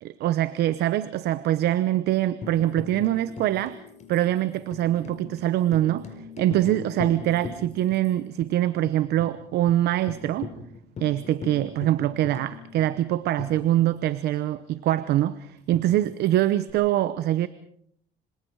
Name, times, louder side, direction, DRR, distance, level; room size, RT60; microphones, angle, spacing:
voice 1, 0.0-3.8 4.1-6.1 6.4-10.5 11.0-17.5, right 13 dB, 75° right, 15 dB, 0.9 m, -24 dB
Tambourine, 2.4-8.1 8.4-8.5 8.9-9.3 9.7-9.8 10.1-14.2 15.7-16.7, left 5 dB, 40° left, 4.5 m, -40 dB
26.5 x 26.0 x 4.8 m, 0.65 s
cardioid pair, 110°, 17 cm